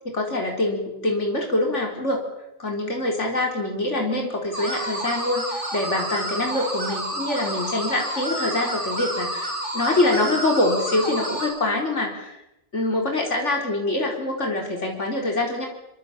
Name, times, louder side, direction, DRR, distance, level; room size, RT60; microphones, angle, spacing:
voice 1, 0.0-2.2 2.6-12.4 12.7-15.7, left 2 dB, 80° left, 1 dB, 4.7 m, -25 dB
sound 1, 4.5-11.5, right 1 dB, 45° right, 6.7 m, -29 dB
26.5 x 25.5 x 8.9 m, 0.85 s
omnidirectional pair, 1.2 m